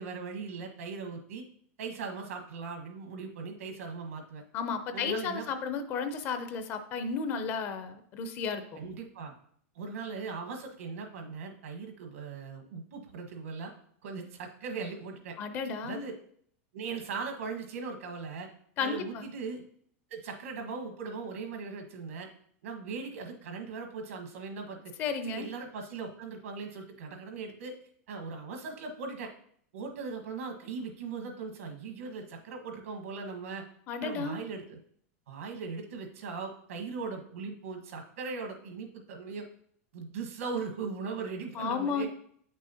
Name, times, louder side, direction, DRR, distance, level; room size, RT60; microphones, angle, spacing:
voice 1, 0.0-1.4 1.8-4.4 4.9-5.4 8.7-9.3 9.7-13.7 14.0-15.3 15.8-16.1 16.7-18.5 18.8-19.6 20.1-22.3 22.6-24.9 25.2-27.7 28.1-29.3 29.7-33.7 34.0-34.8 35.3-39.5 39.9-42.1, right 4 dB, 80° right, 3 dB, 1.4 m, -39 dB
voice 2, 4.5-8.6 15.4-16.0 18.8-19.3 25.0-25.5 33.9-34.4 41.6-42.1, left 5 dB, 25° left, 9 dB, 0.5 m, -33 dB
8.6 x 6.2 x 2.8 m, 0.63 s
supercardioid pair, 170°, 8 cm